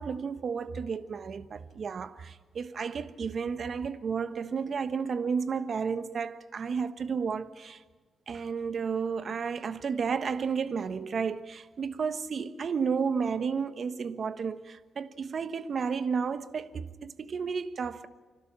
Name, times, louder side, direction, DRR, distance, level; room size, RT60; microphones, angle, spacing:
voice 1, 0.0-7.8 8.3-18.1, right 6 dB, 55° right, 1.2 m, -32 dB
30.0 x 12.5 x 8.9 m
cardioid pair, 85°, 0 cm